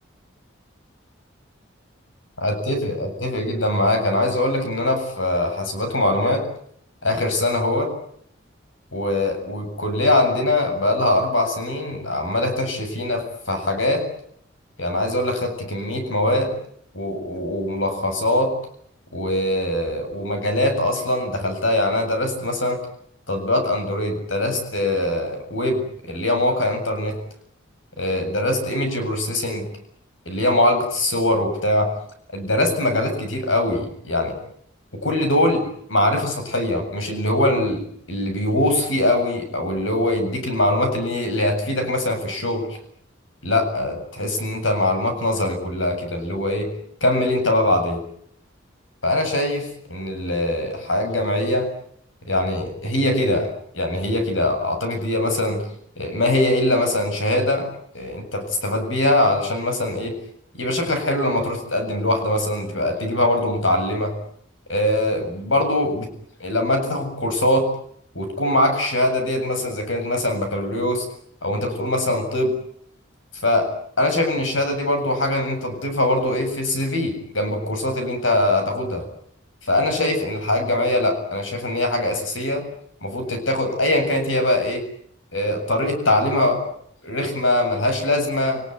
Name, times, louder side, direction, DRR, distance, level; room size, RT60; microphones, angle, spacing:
voice 1, 2.4-6.5 7.0-7.9 8.9-14.1 14.8-16.5 16.9-18.5 19.1-22.8 23.3-27.2 28.0-29.7 30.3-31.9 32.3-34.3 35.0-35.6 35.9-42.7 43.4-46.7 47.0-48.0 49.0-51.7 52.3-55.6 56.0-57.7 57.9-60.1 60.6-64.1 64.7-66.1 66.4-67.7 68.1-71.1 71.4-72.6 73.4-73.7 74.0-79.0 79.6-82.6 83.0-84.8 85.3-86.6 87.0-88.6, left 1 dB, 75° left, 5 dB, 7.7 m, -22 dB
29.5 x 20.0 x 9.9 m, 0.68 s
head